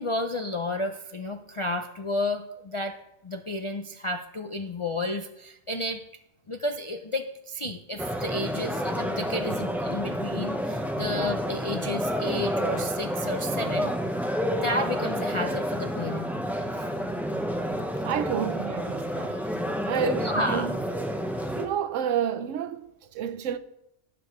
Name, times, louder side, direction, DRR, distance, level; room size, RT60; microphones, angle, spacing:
voice 1, 0.0-3.0 3.2-6.0 6.5-13.9 14.4-16.3 16.6-16.9 20.0-20.7, left 1 dB, 55° left, 0.3 m, -31 dB
sound 1, 8.0-21.7, equal, ahead, 0.6 m, -29 dB
voice 2, 18.0-19.5 19.8-20.8 21.6-23.6, right 9 dB, 80° right, 1.0 m, -30 dB
17.0 x 6.8 x 3.1 m
omnidirectional pair, 1.3 m